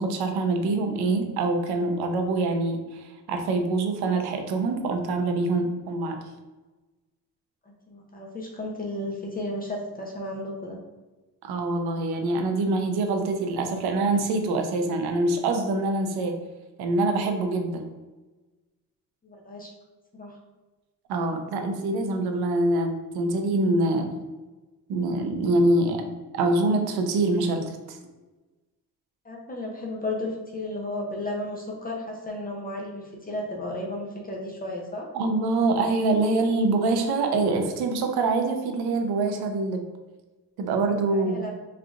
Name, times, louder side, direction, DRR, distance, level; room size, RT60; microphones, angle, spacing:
voice 1, 0.0-6.2 11.4-16.4 16.8-17.8 21.1-24.1 24.9-26.0 26.3-28.0 35.1-39.8 40.6-41.5, right 2 dB, 85° right, 5 dB, 0.7 m, -25 dB
voice 2, 7.7-10.8 19.2-19.7 20.1-20.4 29.2-35.1 41.1-41.5, left 1 dB, 25° left, -2 dB, 0.6 m, -34 dB
3.8 x 3.2 x 2.4 m, 1.2 s
cardioid pair, 115°, 37 cm